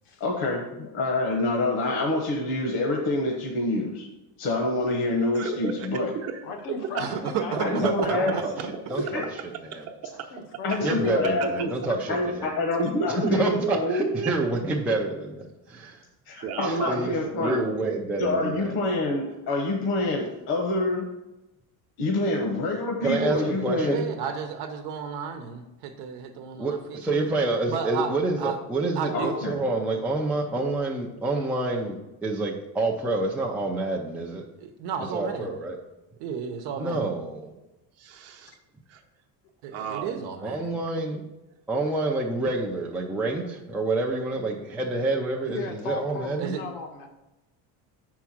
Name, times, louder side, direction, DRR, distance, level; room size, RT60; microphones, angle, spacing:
voice 1, 0.2-4.1 4.4-6.1 7.6-8.3 9.1-9.2 10.6-11.7 12.1-14.1 16.3-17.7 18.2-21.0 22.0-24.0 29.1-29.6, left 2 dB, 65° left, 0 dB, 1.2 m, -26 dB
voice 2, 5.3-7.0 9.9-10.1 13.0-14.3 16.3-18.0 38.0-38.6 38.9-39.0 39.7-40.3, right 7 dB, 40° right, 2 dB, 0.9 m, -33 dB
voice 3, 6.4-8.7 10.1-11.1 45.5-47.1, left 3 dB, 90° left, 3 dB, 1.4 m, -37 dB
voice 4, 7.0-8.4 23.9-27.3 27.7-28.6 29.0-29.3 34.6-35.5 36.2-37.0 39.6-40.7 46.4-46.6, right 7 dB, 75° right, 5 dB, 0.9 m, -32 dB
voice 5, 7.5-8.5 8.9-9.2 9.7-9.8 10.8-12.5 13.1-16.0 16.6-18.7 23.0-24.1 26.6-34.4 35.1-35.8 36.8-37.5 40.4-41.2 41.7-46.5, right 2 dB, 5° right, -2 dB, 0.4 m, -28 dB
6.1 x 4.7 x 5.9 m, 0.98 s
cardioid pair, 165°, 40 cm